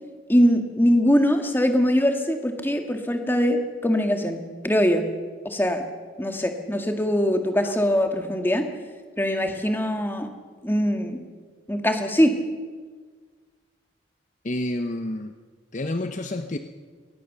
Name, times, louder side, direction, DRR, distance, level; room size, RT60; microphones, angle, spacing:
voice 1, 0.3-5.1 5.5-5.8 6.2-8.7 9.2-10.3 10.6-11.2 11.7-12.3, equal, 10° left, 5 dB, 1.8 m, -22 dB
voice 2, 14.4-15.3 15.7-16.6, left 1 dB, 40° left, 7 dB, 0.8 m, -29 dB
21.5 x 18.5 x 6.8 m, 1.5 s
head